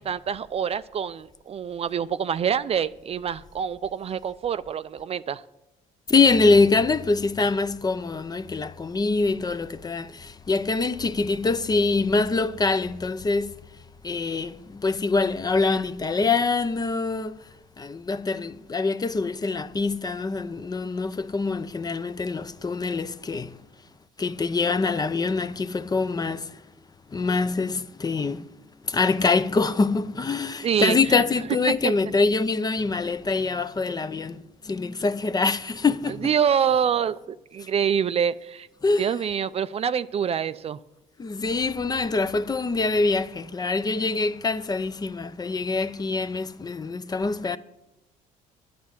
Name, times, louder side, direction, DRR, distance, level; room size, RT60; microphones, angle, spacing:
voice 1, 0.0-5.4 30.6-31.2 31.8-31.9 36.1-38.7 39.0-40.8, right 8 dB, 40° right, 0.4 m, -26 dB
voice 2, 6.1-13.6 14.0-17.4 17.8-23.6 24.2-26.6 27.1-28.4 28.8-36.3 38.8-39.1 41.2-47.6, left 3 dB, 25° left, 0.6 m, -24 dB
10.0 x 9.4 x 7.2 m
supercardioid pair, 80°, 16 cm